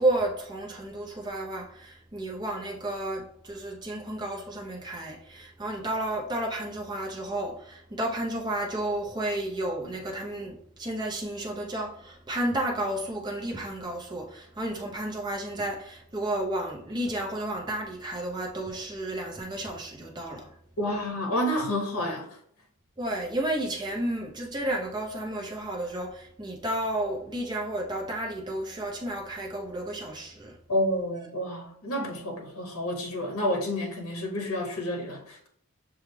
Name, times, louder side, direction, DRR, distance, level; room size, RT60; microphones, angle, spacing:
voice 1, 0.0-20.5 23.0-30.6, right 1 dB, 20° right, 0.6 m, -32 dB
voice 2, 20.8-22.2 30.7-35.5, left 1 dB, 75° left, 0.8 m, -29 dB
6.3 x 2.3 x 3.2 m
head